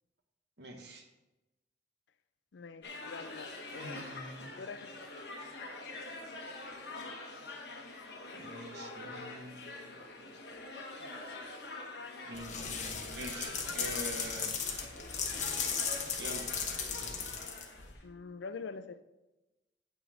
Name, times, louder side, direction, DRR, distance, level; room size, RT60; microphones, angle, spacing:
voice 1, 0.6-1.1 3.7-4.5 8.3-9.9 10.1-10.3 12.2-14.6 16.2-16.5, right 1 dB, 65° right, 3 dB, 1.1 m, -45 dB
voice 2, 2.5-4.0 4.6-5.1 18.0-19.0, left 4 dB, 80° left, 13 dB, 0.5 m, -45 dB
sound 1, 2.8-18.0, left 2 dB, 60° left, 1.3 m, -45 dB
sound 2, 12.3-17.9, left 6 dB, 40° left, 1.1 m, -36 dB
8.1 x 6.0 x 4.9 m, 1.0 s
head